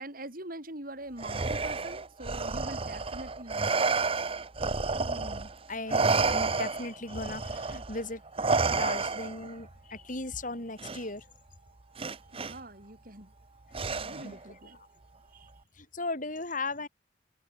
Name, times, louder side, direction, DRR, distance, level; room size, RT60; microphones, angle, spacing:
voice 1, 0.0-3.8 12.3-13.3 13.9-14.8 15.3-15.5, right 1 dB, 50° right, 6.8 m, -43 dB
Respiratory sounds, 1.2-5.5 5.9-9.5 10.8-11.0 12.0-12.5 13.7-14.4, right 4 dB, 30° right, 0.9 m, -30 dB
voice 2, 5.0-8.2 8.7-11.3 14.0-14.4 15.8-16.9, left 2 dB, 45° left, 5.9 m, -37 dB
head